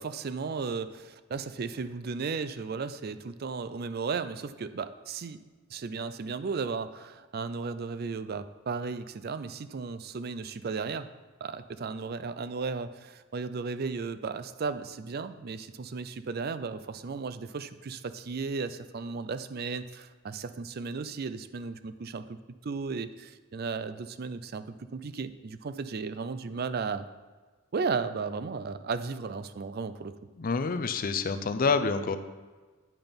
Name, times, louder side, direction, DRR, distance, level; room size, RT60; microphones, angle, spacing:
voice 1, 0.0-5.4 5.7-11.1 11.4-22.4 22.6-27.1 27.7-30.2, right 4 dB, 50° right, 12 dB, 0.4 m, -35 dB
voice 2, 30.4-32.2, left 4 dB, 45° left, 10 dB, 0.5 m, -27 dB
8.9 x 5.9 x 5.2 m, 1.4 s
head